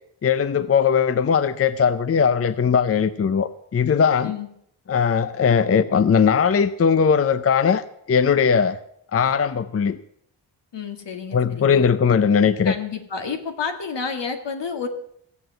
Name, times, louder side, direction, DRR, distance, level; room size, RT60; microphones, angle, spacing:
voice 1, 0.2-4.3 4.9-8.8 9.1-10.0 11.3-12.7, left 6 dB, 35° left, 14 dB, 0.5 m, -19 dB
voice 2, 10.7-11.9 12.6-14.9, left 5 dB, 75° left, 6 dB, 2.0 m, -30 dB
16.5 x 7.8 x 7.8 m, 0.72 s
wide cardioid pair, 105°, 43 cm